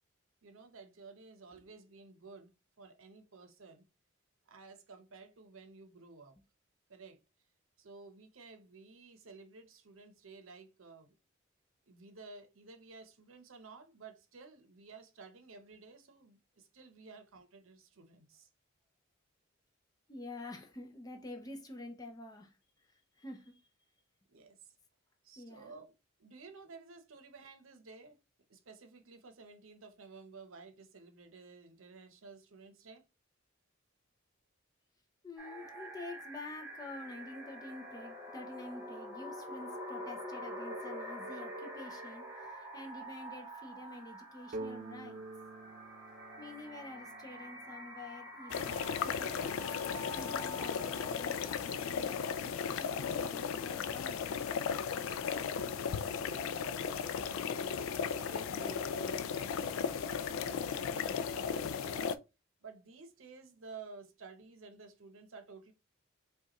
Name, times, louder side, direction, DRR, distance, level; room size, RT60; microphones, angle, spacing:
voice 1, 0.4-3.8 4.5-6.3 6.9-7.2 7.8-11.2 11.9-18.5 24.3-24.7 25.2-25.9 26.2-28.2 28.5-33.0 54.9-57.4 58.1-62.2 62.6-65.7, right 4 dB, 85° right, 0.8 m, -53 dB
voice 2, 20.1-23.6 25.4-25.7 35.2-45.2 46.4-49.6 50.1-54.4, left 2 dB, 20° left, 0.6 m, -48 dB
sound 1, 35.4-54.2, equal, 10° right, 1.1 m, -47 dB
sound 2, 44.5-48.2, right 2 dB, 40° right, 0.3 m, -47 dB
sound 3, 48.5-62.1, left 6 dB, 85° left, 0.3 m, -36 dB
5.0 x 2.4 x 2.9 m
head